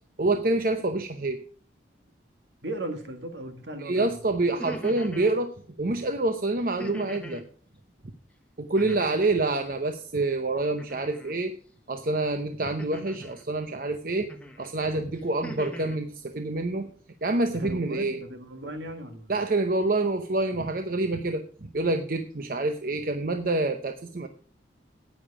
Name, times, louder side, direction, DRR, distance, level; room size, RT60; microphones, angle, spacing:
voice 1, 0.2-1.4 3.8-5.5 5.8-7.4 8.6-11.6 11.9-14.3 14.6-16.9 17.2-18.2 19.3-24.3, right 2 dB, 50° right, 7 dB, 0.8 m, -27 dB
voice 2, 2.6-4.1 8.8-8.9 17.5-19.3, right 1 dB, 70° right, 6 dB, 1.9 m, -37 dB
sound 1, 4.5-5.4 6.8-7.5 8.8-9.4 10.8-11.4 12.8-13.4 14.3-14.7 15.1-16.0, equal, 5° left, 1.2 m, -40 dB
10.0 x 9.5 x 4.8 m, 0.42 s
head